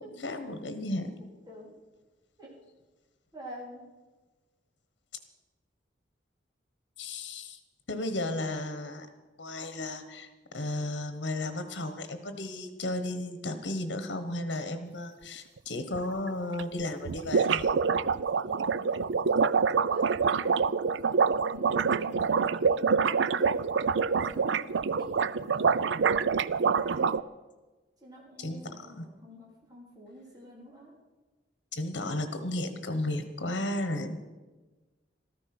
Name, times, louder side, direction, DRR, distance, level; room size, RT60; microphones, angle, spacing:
voice 1, 0.1-1.1 7.0-7.6 7.9-9.1 9.4-17.8 28.4-29.0 31.7-34.2, left 1 dB, 80° left, 9 dB, 1.3 m, -34 dB
voice 2, 3.3-3.8 18.1-23.6 24.0-27.2 28.0-31.0, equal, 25° right, -3 dB, 3.9 m, -49 dB
sound 1, 16.0-16.1 16.3-16.4 16.6-16.7 16.9-27.2, right 5 dB, 85° right, 0.5 m, -26 dB
14.0 x 14.0 x 6.1 m, 1.2 s
head